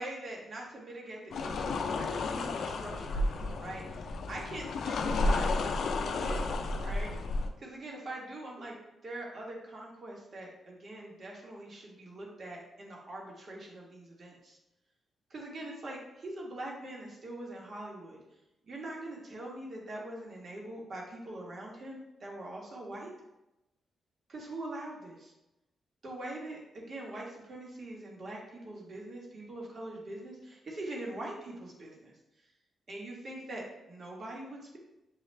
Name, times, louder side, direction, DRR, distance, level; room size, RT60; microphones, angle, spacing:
voice 1, 0.0-5.7 6.1-6.5 6.8-7.1 7.6-8.8 9.0-14.6 15.3-18.2 18.6-23.1 24.3-25.3 26.0-32.1 32.9-34.8, right 1 dB, 50° right, -2 dB, 1.4 m, -43 dB
sound 1, 1.3-7.5, left 2 dB, 75° left, 0.4 m, -32 dB
6.7 x 2.4 x 3.3 m, 0.93 s
cardioid pair, 90°, 0 cm